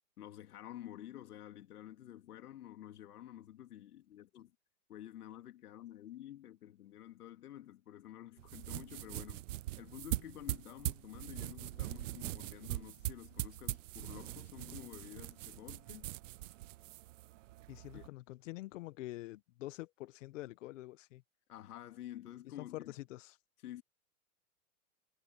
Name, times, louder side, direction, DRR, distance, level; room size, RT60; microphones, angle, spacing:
voice 1, 0.2-4.5 4.9-9.5 9.8-16.1 17.9-18.1 21.5-22.9 23.6-23.8, left 12 dB, 75° left, 2.8 m, -50 dB
sound 1, 8.4-18.1, right 16 dB, 55° right, 0.5 m, -42 dB
voice 2, 17.7-21.2 22.4-23.4, left 17 dB, 55° left, 1.1 m, -46 dB
hypercardioid pair, 150°, 45 cm